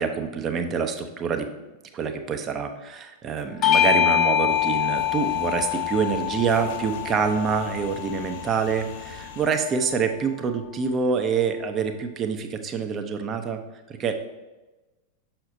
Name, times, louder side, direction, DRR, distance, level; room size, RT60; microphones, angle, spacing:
voice 1, 0.0-1.5 1.9-13.6 14.0-14.1, right 6 dB, 25° right, 6 dB, 0.6 m, -26 dB
Bell / Doorbell, 3.6-8.5, left 11 dB, 30° left, 0.4 m, -24 dB
sound 1, 4.5-9.5, left 4 dB, 45° left, 0.9 m, -43 dB
6.4 x 5.8 x 2.6 m, 1.1 s
figure-of-eight pair, 90°, 0 cm